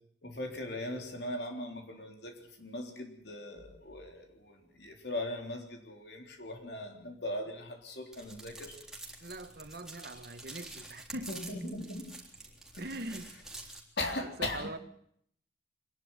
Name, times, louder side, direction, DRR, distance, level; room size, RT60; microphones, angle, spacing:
voice 1, 0.2-8.8 11.3-12.1 12.7-12.9 14.0-14.8, left 1 dB, 65° left, 3.7 m, -39 dB
sound 1, 8.1-13.8, right 2 dB, ahead, 3.7 m, -48 dB
voice 2, 9.2-11.4 12.8-13.4 14.2-14.8, right 1 dB, 55° right, 1.7 m, -42 dB
25.0 x 11.0 x 9.7 m
head